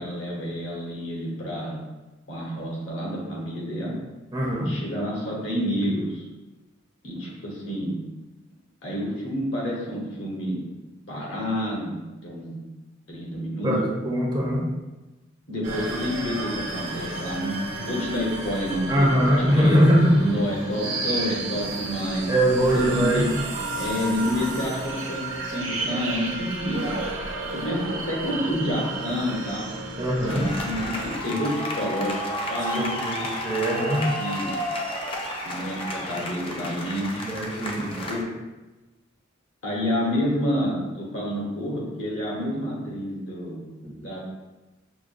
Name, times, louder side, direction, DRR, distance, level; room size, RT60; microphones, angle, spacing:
voice 1, 0.0-1.8 2.3-4.0 4.6-6.2 7.0-8.0 8.8-10.6 11.1-12.5 13.1-13.9 15.5-19.8 20.2-22.3 22.7-23.3 23.7-26.9 27.5-29.7 30.2-32.2 32.5-32.9 34.2-34.5 35.4-37.1 37.8-38.2 39.6-43.6 44.0-44.2, equal, 70° left, -3 dB, 1.2 m, -29 dB
voice 2, 4.3-4.7 13.6-13.8 14.0-14.6 18.9-20.4 22.3-23.2 30.0-30.5 32.8-34.1 37.2-38.1 43.8-44.0, equal, 20° right, -3 dB, 0.6 m, -22 dB
sound 1, 15.6-31.2, right 2 dB, 75° right, 0.9 m, -32 dB
sound 2, 30.3-38.2, equal, 30° left, 0.5 m, -31 dB
6.1 x 2.2 x 2.5 m, 1.1 s
head